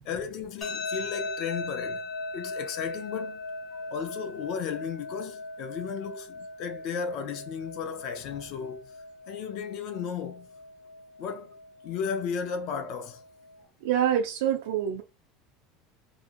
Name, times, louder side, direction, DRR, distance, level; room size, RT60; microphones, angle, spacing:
voice 1, 0.0-2.0 2.3-3.4 3.9-8.8 9.3-10.5 11.2-11.5 11.8-13.2, left 6 dB, 40° left, 0.5 m, -34 dB
sound 1, 0.6-13.6, left 2 dB, 15° left, 0.8 m, -39 dB
voice 2, 13.8-15.0, right 9 dB, 70° right, 0.4 m, -26 dB
2.8 x 2.6 x 2.4 m
supercardioid pair, 175°, 0 cm